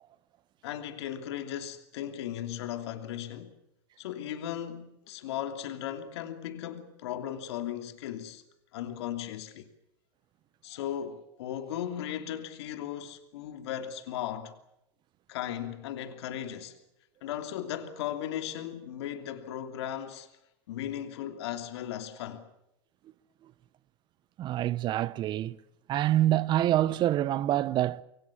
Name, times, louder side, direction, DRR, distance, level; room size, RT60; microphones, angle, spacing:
voice 1, 0.6-3.6 4.0-8.4 8.7-9.7 10.6-14.5 15.3-16.8 17.2-20.3 20.7-22.5, left 11 dB, 85° left, 3.0 m, -37 dB
voice 2, 24.4-25.6 25.9-28.0, right 13 dB, 35° right, 0.9 m, -26 dB
26.0 x 23.0 x 7.3 m
supercardioid pair, 145°, 14 cm